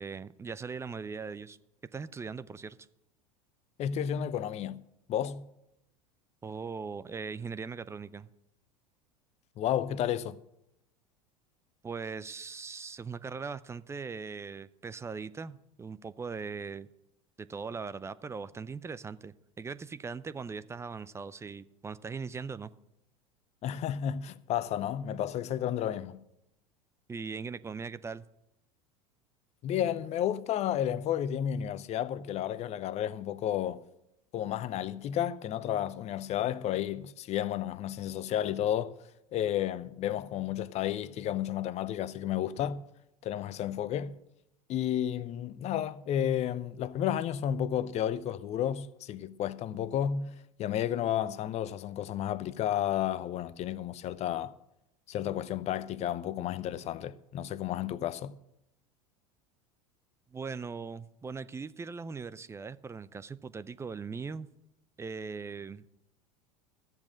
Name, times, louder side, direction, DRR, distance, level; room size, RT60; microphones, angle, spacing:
voice 1, 0.0-1.6 1.9-2.8 6.4-8.3 11.8-16.9 17.4-22.7 27.1-28.3 60.3-64.5 65.0-65.8, right 5 dB, 15° right, 0.5 m, -40 dB
voice 2, 3.8-4.8 5.1-5.5 9.6-10.4 23.6-26.2 29.6-33.8 34.3-38.9 39.3-42.8 43.2-44.2 44.7-54.5 55.1-58.4, left 10 dB, 35° left, 0.6 m, -32 dB
13.5 x 7.2 x 7.5 m
figure-of-eight pair, 80°, 19 cm